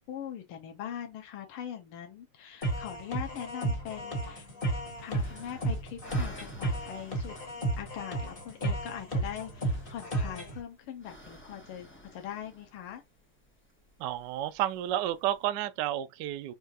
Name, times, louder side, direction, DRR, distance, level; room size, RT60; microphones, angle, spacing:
voice 1, 0.0-4.5 5.0-7.4 7.8-13.0, left 10 dB, 90° left, 1.6 m, -41 dB
sound 1, 2.6-10.6, right 2 dB, 30° left, 1.4 m, -33 dB
sound 2, 4.8-15.5, equal, 10° left, 0.5 m, -54 dB
voice 2, 14.0-16.5, right 13 dB, 80° right, 1.0 m, -31 dB
5.5 x 2.4 x 2.7 m
omnidirectional pair, 2.4 m